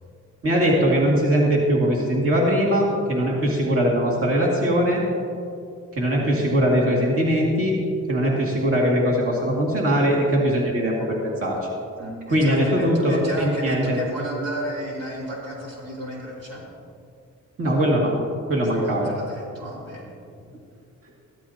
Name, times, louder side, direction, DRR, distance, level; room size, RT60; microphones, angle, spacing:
voice 1, 0.4-5.0 5.9-7.8 8.1-11.6 12.3-14.0 17.6-18.1 18.5-19.1, equal, 45° right, -3 dB, 2.3 m, -21 dB
voice 2, 12.0-16.6 18.7-20.1, equal, 85° right, -5 dB, 3.3 m, -32 dB
14.0 x 12.5 x 2.9 m, 2.4 s
cardioid pair, 80°, 32 cm